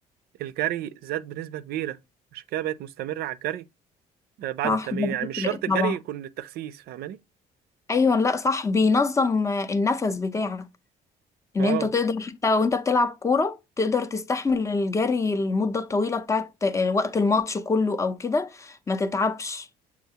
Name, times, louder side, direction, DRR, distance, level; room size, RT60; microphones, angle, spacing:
voice 1, 0.4-2.0 2.3-3.7 4.4-7.2 11.6-11.9, right 13 dB, 70° right, 0.4 m, -30 dB
voice 2, 4.6-5.9 7.9-10.6 11.5-19.7, left 4 dB, 20° left, 0.5 m, -24 dB
6.6 x 2.4 x 2.7 m
cardioid pair, 110°, 17 cm